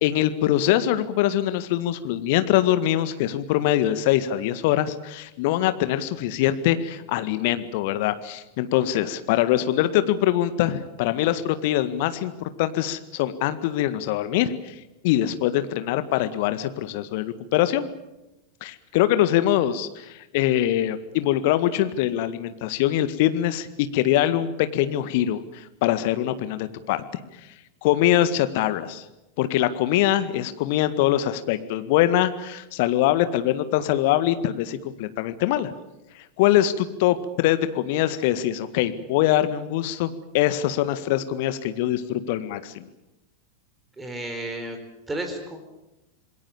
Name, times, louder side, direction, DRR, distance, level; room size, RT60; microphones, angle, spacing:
voice 1, 0.0-17.9 18.6-27.5 27.8-29.1 29.4-35.7 36.2-42.9, left 12 dB, 50° left, 12 dB, 1.8 m, -23 dB
voice 2, 44.0-44.8 45.1-45.6, right 1 dB, 10° right, 5 dB, 4.5 m, -32 dB
27.5 x 21.0 x 7.2 m, 0.96 s
figure-of-eight pair, 90°, 0 cm